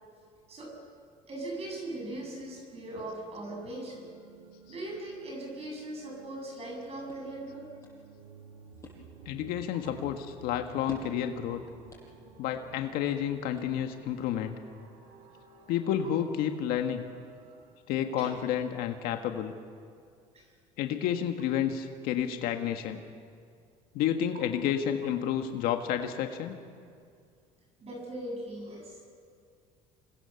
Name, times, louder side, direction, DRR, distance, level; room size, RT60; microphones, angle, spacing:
voice 1, 1.3-4.0 4.7-7.7 11.5-11.6 18.2-18.4 20.3-20.5 24.3-24.4 27.8-29.1, right 1 dB, 40° right, 0 dB, 7.9 m, -39 dB
sound 1, 1.7-17.7, right 5 dB, 90° right, 4.4 m, -54 dB
sound 2, 6.7-14.2, left 3 dB, 20° left, 7.8 m, -54 dB
voice 2, 9.2-11.6 12.4-14.5 15.7-17.0 17.9-19.5 20.8-23.0 23.9-26.6, left 9 dB, 75° left, 6 dB, 1.6 m, -30 dB
26.5 x 21.5 x 7.1 m, 2.2 s
supercardioid pair, 105°, 16 cm